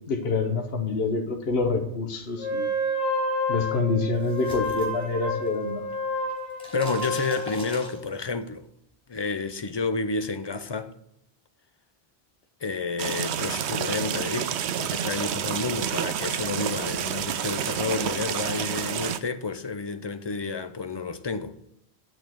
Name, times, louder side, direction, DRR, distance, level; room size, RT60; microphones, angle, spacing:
voice 1, 0.0-2.7 3.5-5.8, left 4 dB, 65° left, 1.3 m, -27 dB
Wind instrument woodwind instrument, 2.4-8.0, equal, 20° right, 3.1 m, -29 dB
coqueteleira com liquido, 4.0-5.7 6.0-8.4, left 1 dB, 5° left, 4.4 m, -42 dB
voice 2, 6.7-8.6 9.1-10.9 12.6-21.6, left 4 dB, 30° left, 0.5 m, -30 dB
sound 1, 13.0-19.2, right 9 dB, 80° right, 0.9 m, -29 dB
8.8 x 6.5 x 7.9 m
omnidirectional pair, 1.1 m